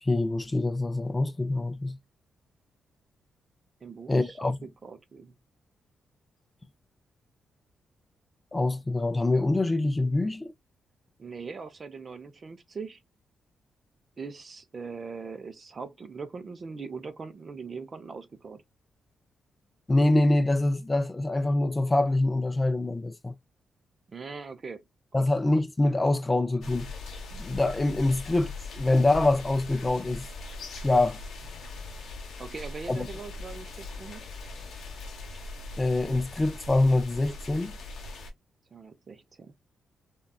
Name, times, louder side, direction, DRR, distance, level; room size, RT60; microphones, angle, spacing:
voice 1, 0.0-2.0 4.1-4.6 8.5-10.5 19.9-23.4 25.1-26.9 27.3-30.3 30.8-31.2 32.9-33.1 35.8-37.7, left 2 dB, 20° left, 0.4 m, -25 dB
voice 2, 3.8-5.4 11.2-13.0 14.2-18.6 24.1-24.8 25.2-25.3 32.4-34.3 38.7-39.5, right 5 dB, 45° right, 0.5 m, -41 dB
sound 1, 26.6-38.3, left 3 dB, 75° left, 0.9 m, -40 dB
3.6 x 2.3 x 2.2 m
cardioid pair, 80°, 0 cm